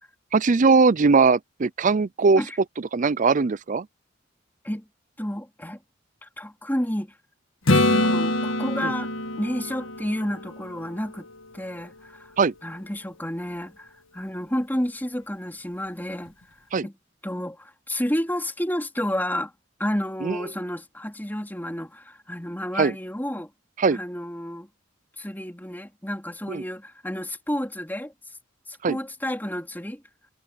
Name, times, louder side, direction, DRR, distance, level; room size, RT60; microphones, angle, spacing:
voice 1, 0.3-2.4 2.9-3.9 8.8-8.9 12.4-12.5 16.7-16.9 20.2-20.4 22.8-22.9 23.8-24.0 26.5-26.6 28.8-29.0, right 4 dB, 40° right, 0.5 m, -20 dB
voice 2, 5.2-5.8 6.2-7.1 7.7-11.3 11.5-12.3 12.6-16.3 16.8-16.9 17.2-19.5 19.8-23.5 23.9-24.7 25.2-28.1 28.7-30.0, equal, 10° left, 3.9 m, -30 dB
Acoustic guitar / Strum, 7.7-11.4 16.3-16.4, left 1 dB, 80° left, 1.8 m, -25 dB
head